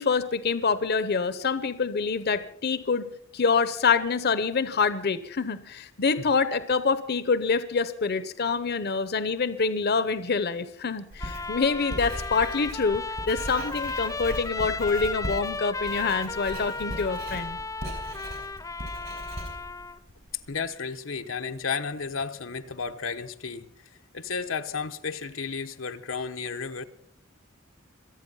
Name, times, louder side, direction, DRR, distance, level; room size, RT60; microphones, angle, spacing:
voice 1, 0.0-17.6, left 5 dB, 55° left, 13 dB, 0.7 m, -26 dB
Writing, 11.1-20.5, right 1 dB, 80° right, 5.9 m, -38 dB
Trumpet, 11.2-20.0, left 3 dB, 15° left, 0.6 m, -35 dB
voice 2, 20.5-23.7 24.1-26.8, left 5 dB, 90° left, 7 dB, 1.0 m, -33 dB
26.0 x 8.7 x 5.5 m, 0.68 s
head